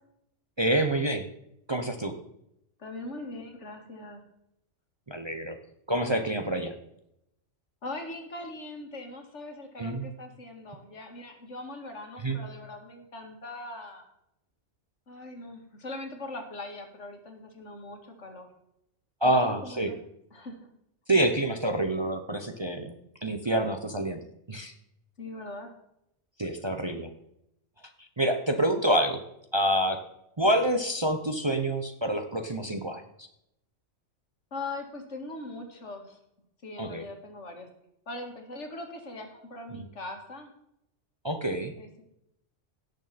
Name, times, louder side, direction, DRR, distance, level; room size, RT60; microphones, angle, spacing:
voice 1, 0.6-1.3 1.7-2.1 5.1-5.6 5.9-6.7 9.8-10.1 12.2-12.4 19.2-19.9 21.1-22.9 23.2-24.2 24.5-24.7 26.4-27.1 28.2-29.2 29.5-30.0 30.4-33.0 36.8-37.0 39.7-39.8 41.2-41.7, right 1 dB, 25° right, 6 dB, 0.8 m, -27 dB
voice 2, 2.8-4.2 7.8-14.1 15.1-18.5 19.2-20.0 20.3-20.6 25.2-25.7 26.4-26.5 26.8-27.0 34.5-36.2 36.6-37.7 38.1-40.5 41.8-42.0, left 2 dB, 70° left, 4 dB, 2.2 m, -41 dB
17.5 x 6.6 x 4.2 m, 0.78 s
omnidirectional pair, 1.3 m